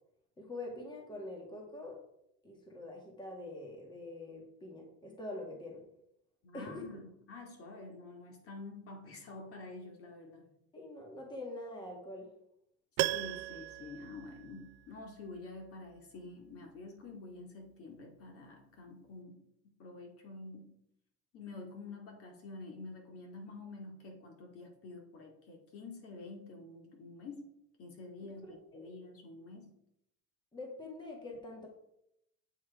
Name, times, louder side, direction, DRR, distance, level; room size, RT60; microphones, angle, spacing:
voice 1, 0.4-2.0 2.4-5.8 6.5-7.0 10.7-12.3 28.2-28.9 30.5-31.7, left 2 dB, 15° left, 0 dB, 1.8 m, -45 dB
voice 2, 6.4-10.5 13.1-19.4 19.8-20.8 21.3-27.5 27.8-29.7, left 3 dB, 45° left, 1 dB, 2.2 m, -48 dB
Piano, 13.0-15.1 15.3-15.4, right 18 dB, 70° right, 0.5 m, -37 dB
8.9 x 6.2 x 4.7 m, 0.77 s
cardioid pair, 145°, 31 cm